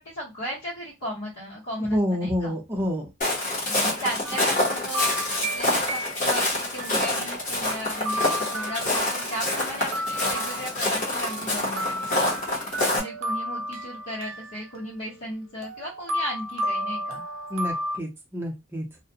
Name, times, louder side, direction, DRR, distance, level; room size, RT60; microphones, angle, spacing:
voice 1, 0.0-2.5 3.7-5.1 5.5-12.3 12.9-17.2, equal, 85° left, -8 dB, 1.2 m, -35 dB
voice 2, 1.8-3.1 17.5-18.8, left 1 dB, 10° right, -1 dB, 0.6 m, -28 dB
Walk footsteps, 3.2-13.0, left 1 dB, 35° left, 0.9 m, -27 dB
sound 1, 4.2-6.5 6.8-18.0, equal, 85° right, 0.5 m, -33 dB
2.5 x 2.1 x 2.7 m, 0.23 s
head